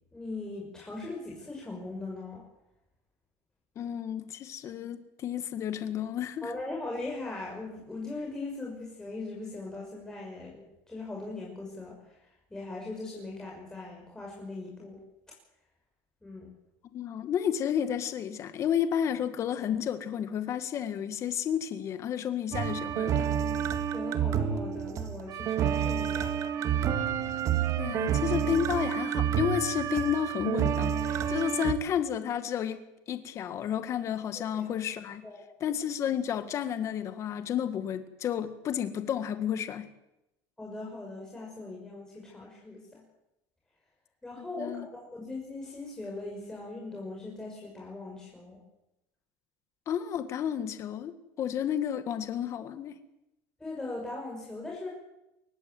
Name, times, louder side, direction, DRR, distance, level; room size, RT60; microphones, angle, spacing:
voice 1, 0.0-2.4 6.4-15.0 16.2-16.5 23.9-26.3 34.4-34.7 35.2-35.4 40.6-43.0 44.2-48.6 53.6-54.9, left 2 dB, 10° left, -2 dB, 6.0 m, -40 dB
voice 2, 3.8-6.5 16.9-23.3 27.8-35.2 35.6-39.9 44.4-44.9 49.9-53.0, left 9 dB, 40° left, 10 dB, 1.8 m, -31 dB
sound 1, 22.5-31.7, right 8 dB, 40° right, 1.9 m, -29 dB
23.5 x 19.0 x 7.8 m, 0.90 s
supercardioid pair, 135°, 8 cm